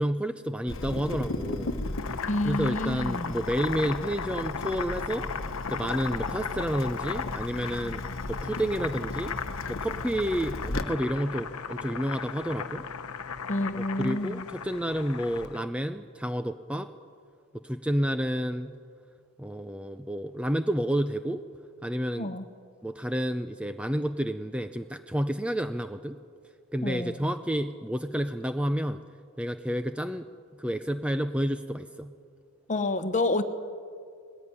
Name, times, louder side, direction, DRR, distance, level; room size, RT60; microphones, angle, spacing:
voice 1, 0.0-1.7 2.4-5.3 5.7-8.0 8.3-9.4 9.7-12.8 14.0-16.9 17.6-18.7 19.4-21.4 21.8-22.3 22.8-26.2 26.7-29.0 29.4-30.2 30.6-32.1, equal, 5° right, 9 dB, 0.4 m, -30 dB
Water tap faucet / Drip, 0.7-10.8, left 2 dB, 60° left, 1.1 m, -36 dB
Boiling, 1.8-15.6, left 6 dB, 80° left, 0.9 m, -36 dB
voice 2, 2.3-3.3 13.5-14.4 22.2-22.4 26.8-27.2 32.7-33.4, left 2 dB, 35° left, 10 dB, 1.0 m, -29 dB
20.0 x 15.5 x 9.7 m, 2.2 s
head